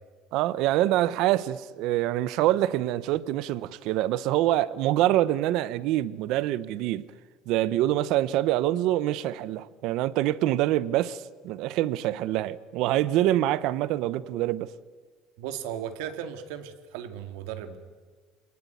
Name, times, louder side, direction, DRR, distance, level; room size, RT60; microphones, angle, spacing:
voice 1, 0.3-7.0 7.5-14.7, right 14 dB, 55° right, 0.9 m, -25 dB
voice 2, 15.4-17.8, right 9 dB, 90° right, 2.2 m, -36 dB
26.5 x 19.5 x 9.3 m
cardioid pair, 170°, 0 cm